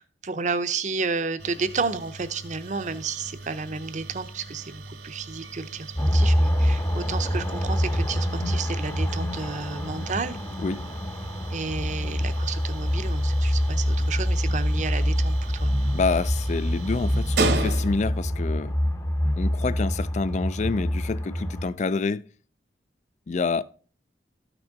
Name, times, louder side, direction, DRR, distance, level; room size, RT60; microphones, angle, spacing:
voice 1, 0.0-10.4 11.5-15.7, right 4 dB, 45° right, 0.7 m, -31 dB
sound 1, 1.4-18.2, right 3 dB, 70° right, 1.2 m, -37 dB
sound 2, 6.0-21.7, equal, 20° left, 0.8 m, -25 dB
voice 2, 15.9-18.7 19.4-22.3 23.3-23.6, left 4 dB, 40° left, 0.3 m, -27 dB
13.0 x 6.0 x 4.0 m
head